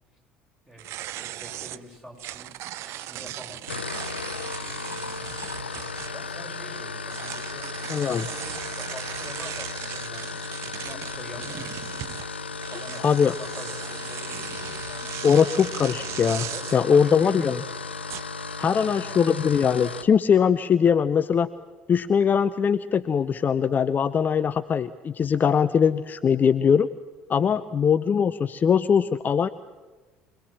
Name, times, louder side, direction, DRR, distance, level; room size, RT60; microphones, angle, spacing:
voice 1, 0.7-2.5 2.8-3.8 4.8-5.6 6.1-11.7 12.7-15.2 16.5-17.5 18.5-19.2 27.4-27.7, equal, 5° right, 0 dB, 6.3 m, -45 dB
sound 1, 0.8-6.4 7.1-16.8 18.1-18.5, right 14 dB, 50° right, 0.6 m, -38 dB
sound 2, 3.6-20.1, left 4 dB, 80° left, 0.7 m, -35 dB
voice 2, 7.9-8.2 13.0-13.3 15.2-17.6 18.6-21.5 21.9-26.9 27.3-29.5, left 7 dB, 30° left, 13 dB, 0.6 m, -21 dB
25.5 x 19.5 x 7.3 m, 1.3 s
figure-of-eight pair, 60°, 6 cm